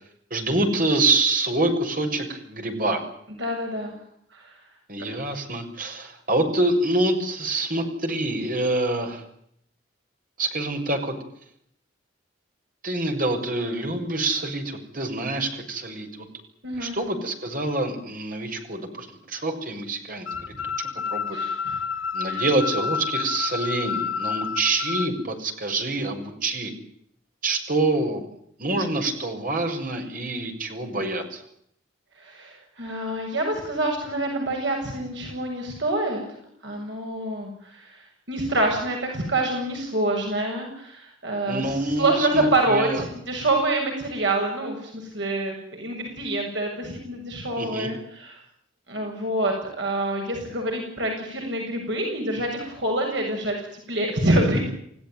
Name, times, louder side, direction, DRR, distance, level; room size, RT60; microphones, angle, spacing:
voice 1, 0.3-3.0 4.9-9.2 10.4-11.1 12.8-16.3 16.8-21.4 22.1-26.7 27.4-28.2 28.6-31.4 41.5-43.0 47.6-47.9, right 2 dB, 45° right, 5 dB, 6.7 m, -26 dB
voice 2, 3.4-3.9 4.3-4.5 16.6-17.0 21.3-21.8 22.3-22.4 32.2-36.2 36.6-48.4 48.9-54.6, right 2 dB, 60° right, 2 dB, 7.5 m, -26 dB
sound 1, 20.3-25.1, left 6 dB, 75° left, 3.7 m, -29 dB
30.0 x 17.5 x 9.3 m, 0.71 s
head